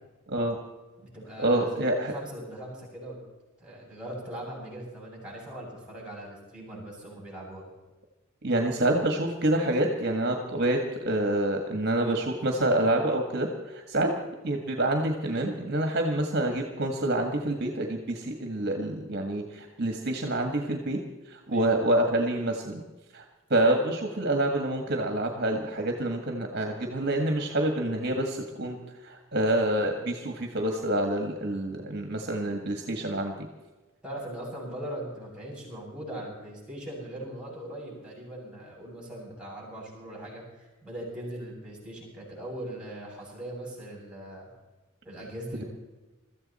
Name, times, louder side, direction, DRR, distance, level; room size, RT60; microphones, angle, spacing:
voice 1, 0.3-0.6 1.4-2.1 8.4-14.1 14.4-21.0 21.3-22.8 23.1-23.2 23.5-28.8 29.0-33.5 45.5-45.6, right 1 dB, 55° right, 3 dB, 1.7 m, -27 dB
voice 2, 1.0-3.2 3.6-7.6 21.5-21.7 34.0-44.5 45.0-45.7, right 1 dB, 5° right, -4 dB, 7.5 m, -40 dB
22.5 x 14.0 x 4.3 m, 1.1 s
head